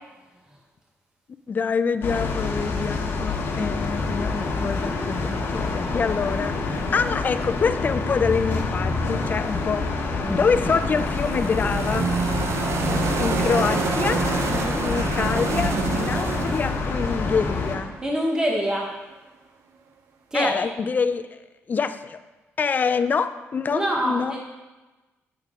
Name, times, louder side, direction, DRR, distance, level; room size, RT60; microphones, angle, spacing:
voice 1, 1.5-12.1 13.2-14.2 14.8-17.9 20.3-21.3 21.7-22.2 22.6-24.4, left 5 dB, 40° left, 12 dB, 0.3 m, -26 dB
sound 1, 2.0-17.8, left 3 dB, 55° left, 1.3 m, -27 dB
sound 2, 10.3-18.3, right 6 dB, 65° right, 0.6 m, -28 dB
voice 2, 12.9-13.7 14.5-14.9 18.0-18.9 20.3-20.5 23.7-24.4, right 1 dB, 15° right, -1 dB, 0.9 m, -26 dB
8.3 x 6.5 x 3.6 m, 1.2 s
cardioid pair, 130°, 5 cm